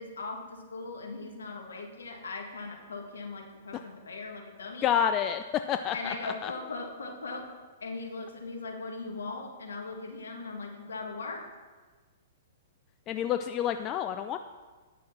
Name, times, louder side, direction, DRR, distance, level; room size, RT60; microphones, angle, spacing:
voice 1, 0.0-4.9 5.9-7.5 7.8-11.4, left 3 dB, 70° left, 1 dB, 1.7 m, -39 dB
voice 2, 4.8-6.5 13.1-14.4, left 9 dB, 30° left, 8 dB, 0.4 m, -29 dB
9.7 x 6.2 x 5.8 m, 1.4 s
figure-of-eight pair, 110°, 0 cm